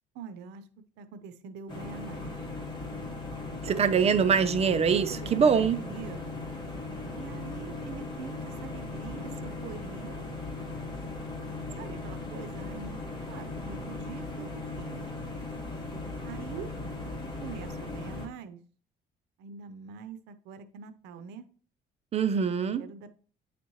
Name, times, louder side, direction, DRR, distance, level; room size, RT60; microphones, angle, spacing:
voice 1, 0.1-0.7 1.0-2.3 5.1-6.3 7.2-10.2 11.8-13.0 13.3-15.1 16.2-16.7 17.4-18.6 19.4-21.5 22.8-23.1, right 6 dB, 90° right, 0.7 m, -44 dB
sound 1, 1.7-18.3, left 3 dB, 25° left, 2.5 m, -38 dB
voice 2, 3.6-5.8 22.1-22.8, right 6 dB, 40° right, 0.7 m, -24 dB
9.4 x 4.2 x 3.1 m
cardioid pair, 110°, 17 cm